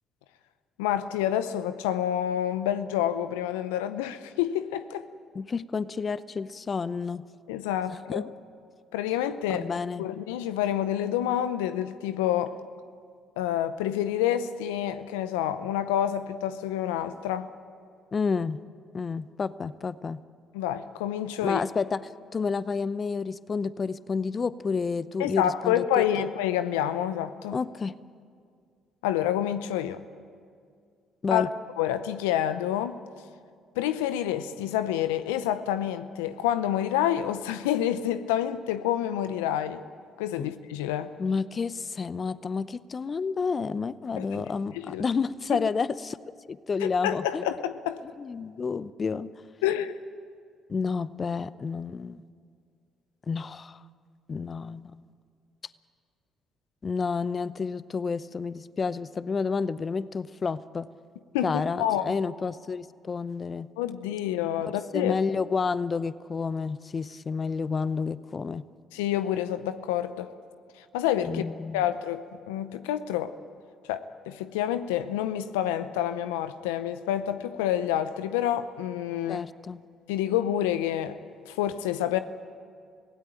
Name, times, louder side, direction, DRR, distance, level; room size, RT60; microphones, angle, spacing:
voice 1, 0.8-5.1 7.5-8.3 8.9-12.6 13.4-17.5 20.5-21.6 25.2-27.6 29.0-30.0 31.3-31.5 31.8-33.0 33.8-39.8 40.2-41.1 44.2-44.4 44.7-45.0 45.5-45.6 46.8-48.0 49.6-50.0 61.3-62.2 63.8-65.1 68.9-70.3 70.8-71.5 71.7-73.4 73.9-79.5 80.1-81.2 81.5-82.2, left 11 dB, 85° left, 0.6 m, -28 dB
voice 2, 5.3-7.2 8.1-8.2 9.5-10.0 18.1-18.6 18.9-20.2 21.4-22.0 22.3-26.0 27.5-27.9 31.2-31.5 40.4-40.5 41.2-46.2 46.5-47.4 48.2-49.3 50.7-52.2 53.3-53.8 54.3-54.9 56.8-60.9 61.4-63.7 64.9-68.6 71.2-71.9 79.3-79.8, left 5 dB, 40° left, 0.7 m, -30 dB
25.5 x 17.0 x 9.1 m
hypercardioid pair, 55°, 0 cm